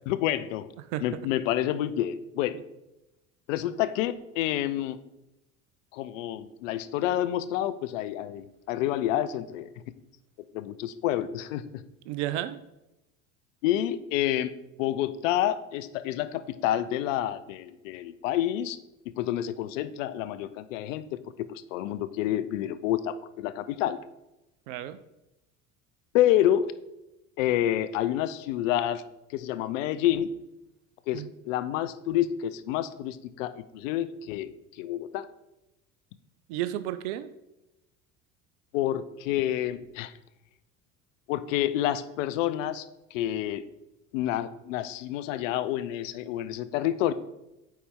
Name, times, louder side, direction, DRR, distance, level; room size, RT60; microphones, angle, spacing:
voice 1, 0.1-0.7 1.0-2.6 3.5-5.0 5.9-9.7 10.5-11.8 13.6-14.5 14.8-18.8 19.2-21.2 21.5-24.0 26.1-26.7 27.4-29.0 29.3-30.3 31.1-35.3 38.7-40.1 41.3-42.9 43.1-43.6 44.1-47.1, left 12 dB, 70° left, 13 dB, 0.6 m, -28 dB
voice 2, 12.1-12.6 24.7-25.0 31.1-31.3 36.5-37.3, right 13 dB, 60° right, 14 dB, 0.6 m, -32 dB
9.0 x 4.3 x 3.6 m, 0.94 s
hypercardioid pair, 70°, 40 cm